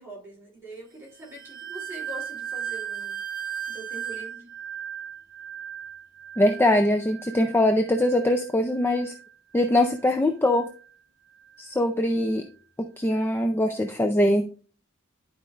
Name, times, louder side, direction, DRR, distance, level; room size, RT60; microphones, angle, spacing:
voice 1, 0.0-3.2 3.7-4.5, right 1 dB, 10° right, -4 dB, 3.2 m, -43 dB
sound 1, 1.1-10.1 10.5-10.9 11.4-11.7, right 9 dB, 45° right, 1.3 m, -37 dB
voice 2, 6.4-9.1 9.5-10.7 11.6-12.4 12.8-14.5, left 1 dB, 10° left, 6 dB, 0.4 m, -22 dB
11.0 x 5.0 x 2.5 m, 0.39 s
head